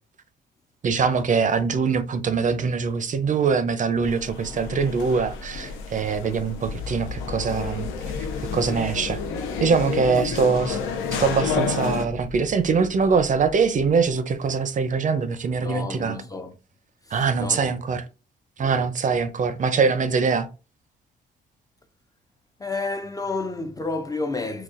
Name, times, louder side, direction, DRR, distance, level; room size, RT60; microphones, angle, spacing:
voice 1, 0.8-7.9 8.5-9.2 9.6-10.8 11.2-16.2 17.1-18.0 18.6-20.5, right 5 dB, 40° right, 0.5 m, -23 dB
sound 1, 4.0-12.0, left 6 dB, 90° left, 0.6 m, -30 dB
sound 2, 6.6-14.2, left 5 dB, 60° left, 1.2 m, -39 dB
voice 2, 15.6-16.6 17.0-17.8 18.6-18.8 22.6-24.6, left 3 dB, 20° left, 0.4 m, -31 dB
3.9 x 2.3 x 2.4 m
cardioid pair, 90°, 20 cm